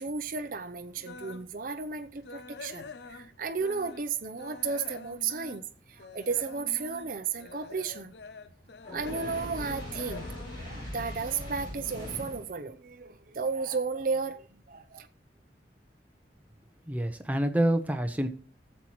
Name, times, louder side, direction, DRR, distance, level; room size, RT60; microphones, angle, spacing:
voice 1, 0.0-5.6 5.9-8.1 8.9-10.3 10.6-15.1, right 5 dB, 50° right, 0.6 m, -33 dB
sound 1, 1.0-1.5 1.9-4.1 4.4-11.6 12.0-12.2 12.7-12.8 13.2-13.3, left 4 dB, 70° left, 0.7 m, -46 dB
Fire, 8.8-12.5, left 1 dB, 25° left, 7.3 m, -40 dB
voice 2, 16.9-18.3, right 1 dB, 10° right, 0.9 m, -27 dB
20.5 x 7.3 x 3.1 m
head